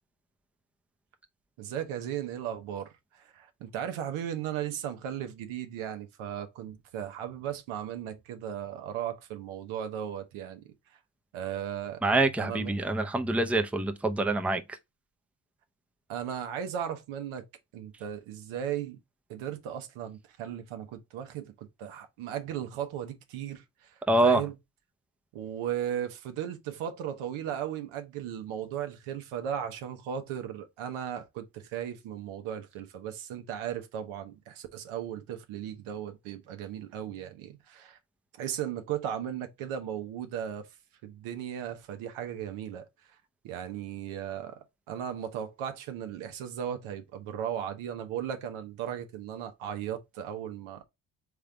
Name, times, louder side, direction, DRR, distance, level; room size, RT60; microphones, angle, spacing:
voice 1, 1.6-10.7 11.3-12.0 12.4-12.8 16.1-17.4 17.7-19.0 19.3-24.6 25.3-38.0 38.3-40.7 41.0-42.9 43.4-50.8, right 9 dB, 85° right, 1.1 m, -36 dB
voice 2, 12.0-14.6 24.1-24.4, right 2 dB, 5° right, 0.6 m, -25 dB
3.7 x 3.6 x 3.4 m
supercardioid pair, 70°, 48 cm